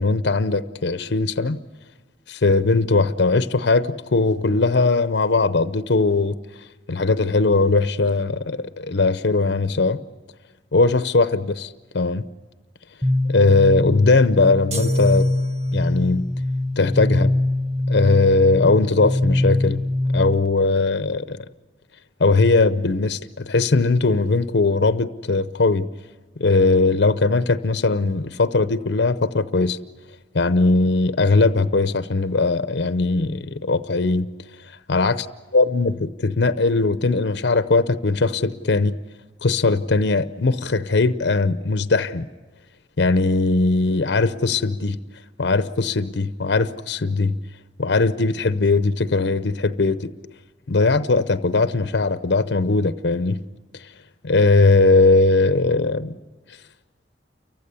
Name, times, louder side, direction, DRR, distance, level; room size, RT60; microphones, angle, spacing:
voice 1, 0.0-1.6 2.3-6.4 6.9-10.0 10.7-12.2 13.3-15.3 15.7-16.3 16.8-17.3 17.9-19.8 20.1-21.4 22.2-25.9 26.4-29.8 30.3-34.3 34.9-35.2 35.5-38.9 39.4-42.3 43.0-45.0 45.4-47.4 47.8-50.1 50.7-53.4 53.7-53.9 54.2-56.1, left 3 dB, 65° left, 12 dB, 0.7 m, -19 dB
sound 1, 13.0-20.6, left 1 dB, 5° right, 0.8 m, -23 dB
sound 2, 14.7-16.1, right 3 dB, 35° right, 1.3 m, -34 dB
29.5 x 15.5 x 9.6 m, 1.3 s
head